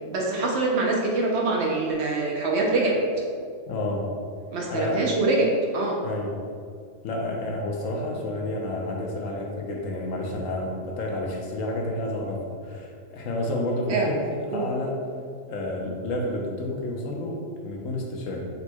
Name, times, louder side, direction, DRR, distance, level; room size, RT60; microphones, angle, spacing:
voice 1, 0.1-3.0 4.5-6.0 13.9-14.1 14.5-14.6, right 3 dB, 65° right, -1 dB, 0.8 m, -24 dB
voice 2, 3.7-4.1 4.7-5.1 6.0-6.4 7.0-14.2 14.5-15.0 15.5-18.5, left 1 dB, 80° left, 0 dB, 1.0 m, -30 dB
4.0 x 2.2 x 4.3 m, 2.2 s
omnidirectional pair, 1.4 m